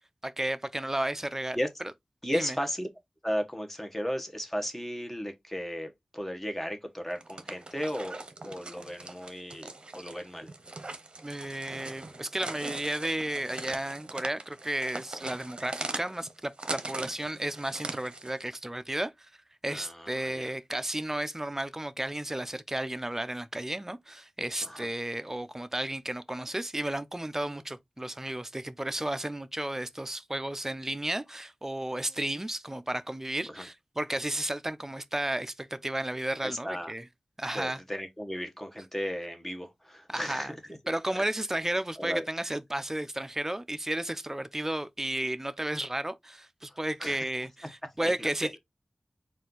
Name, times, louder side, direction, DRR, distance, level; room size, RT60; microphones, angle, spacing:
voice 1, 0.2-1.6 2.3-2.6 11.2-19.3 19.6-37.0 37.4-37.8 40.1-40.5 40.9-48.6, right 1 dB, 20° right, 0.5 m, -33 dB
voice 2, 2.2-2.9 3.2-10.5 19.7-20.5 24.6-24.9 33.5-33.6 36.4-36.9 37.5-40.5 42.0-42.5 46.7-47.2 48.0-48.3, equal, 10° left, 1.1 m, -35 dB
sound 1, 7.1-18.4, right 2 dB, 50° right, 0.8 m, -41 dB
4.3 x 2.5 x 3.8 m
wide cardioid pair, 75°, 2 cm